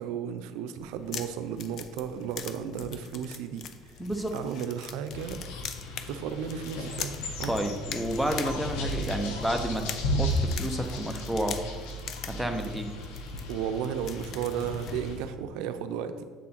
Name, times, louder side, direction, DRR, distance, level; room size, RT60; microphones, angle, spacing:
voice 1, 0.0-3.7 4.3-5.4 6.1-7.5 13.5-16.2, right 8 dB, 80° right, 9 dB, 0.5 m, -34 dB
sound 1, 0.8-15.3, left 8 dB, 55° left, 0.5 m, -43 dB
voice 2, 4.0-4.3 7.5-9.9 10.2-11.6 12.4-12.9, right 1 dB, ahead, 4 dB, 0.8 m, -30 dB
sound 2, 5.1-15.2, equal, 85° left, 1.2 m, -34 dB
7.7 x 3.7 x 5.8 m, 1.5 s
cardioid pair, 110°, 0 cm